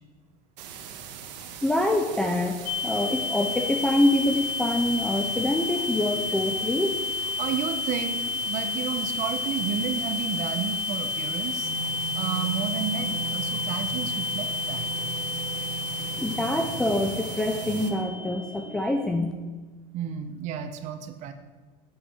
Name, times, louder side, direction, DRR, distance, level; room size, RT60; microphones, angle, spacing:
sound 1, 0.6-17.9, right 8 dB, 80° right, 1.5 m, -41 dB
voice 1, 1.6-6.9 16.2-19.3, left 1 dB, 5° left, 2 dB, 0.4 m, -25 dB
sound 2, 2.7-19.0, left 4 dB, 40° left, 0.9 m, -31 dB
voice 2, 7.4-11.7 12.1-14.9 19.9-21.3, right 8 dB, 35° right, 9 dB, 0.9 m, -32 dB
sound 3, 11.6-17.8, right 9 dB, 20° right, 2.5 m, -37 dB
9.6 x 8.2 x 6.1 m, 1.3 s
supercardioid pair, 165°, 21 cm